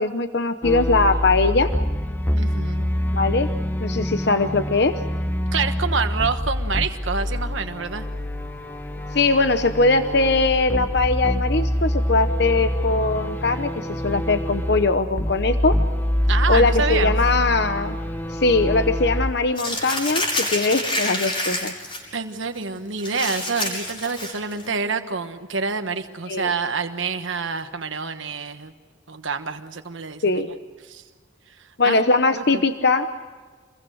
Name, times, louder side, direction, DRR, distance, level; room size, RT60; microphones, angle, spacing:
voice 1, 0.0-1.7 3.1-3.5 3.8-5.0 9.1-15.8 16.5-18.0 18.3-21.7 26.3-26.5 30.2-30.5 31.8-33.1, left 3 dB, 55° left, 9 dB, 0.9 m, -21 dB
sound 1, 0.6-19.3, equal, 10° left, 1.0 m, -25 dB
voice 2, 2.4-2.9 5.5-8.0 16.3-17.1 22.1-28.7 29.1-30.4 30.9-31.0 31.6-32.0 32.5-32.6, right 5 dB, 80° right, 7 dB, 1.3 m, -27 dB
Crumpling crinkling, 19.6-22.0 22.4-22.6 23.0-24.7, left 1 dB, 30° left, 6.3 m, -27 dB
27.0 x 22.0 x 6.4 m, 1.4 s
head